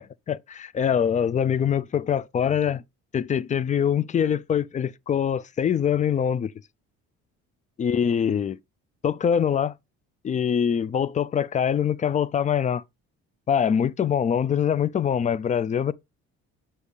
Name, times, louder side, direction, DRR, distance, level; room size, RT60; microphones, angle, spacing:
voice 1, 0.0-2.8 3.1-6.5 7.8-8.6 9.0-9.7 10.2-12.8 13.5-15.9, left 8 dB, 25° left, 0.4 m, -24 dB
6.5 x 2.9 x 5.0 m
cardioid pair, 90°, 29 cm